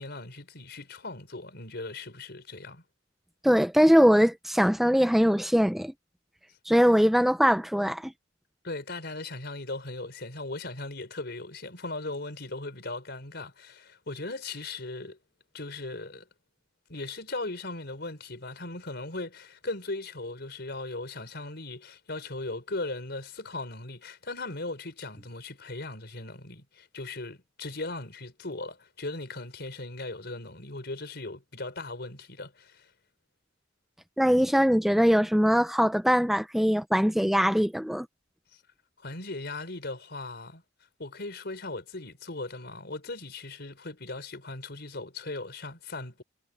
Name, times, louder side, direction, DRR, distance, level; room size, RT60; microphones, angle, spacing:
voice 1, 0.0-2.8 8.6-15.2 15.5-16.3 16.9-32.9 38.5-38.6 39.0-40.6 41.0-46.2, left 2 dB, 60° left, 4.7 m, -38 dB
voice 2, 3.4-5.9 6.7-8.1 34.2-38.1, equal, ahead, 0.6 m, -22 dB
head